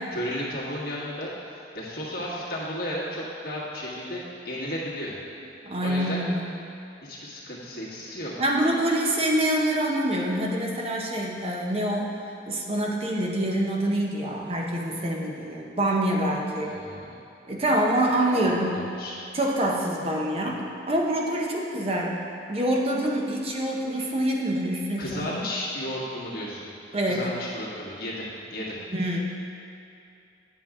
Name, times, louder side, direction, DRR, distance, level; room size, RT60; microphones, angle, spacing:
voice 1, 0.1-5.1 5.8-6.2 7.0-8.3 16.6-17.0 18.3-19.2 25.0-26.7 27.0-28.8, equal, 55° left, -6 dB, 1.7 m, -33 dB
voice 2, 5.6-6.5 8.4-12.1 12.5-16.8 17.5-18.8 19.3-25.4 26.9-27.2 28.9-29.2, right 1 dB, 35° right, -1 dB, 0.7 m, -26 dB
9.1 x 7.5 x 3.6 m, 2.6 s
head